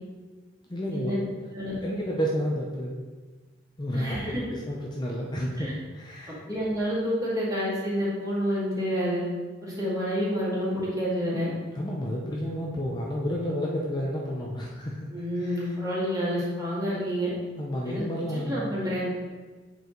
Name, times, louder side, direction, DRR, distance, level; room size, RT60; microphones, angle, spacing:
voice 1, 0.7-1.1 1.8-3.0 3.8-5.7 5.9-6.4 11.7-15.0 15.4-15.7 17.6-18.7, equal, 25° left, -3 dB, 0.7 m, -31 dB
voice 2, 3.9-4.4 5.6-5.7 6.3-9.2 9.6-11.5 15.1-17.3 17.8-18.0 18.3-19.1, equal, 20° right, -7 dB, 2.3 m, -29 dB
7.8 x 4.8 x 3.9 m, 1.4 s
head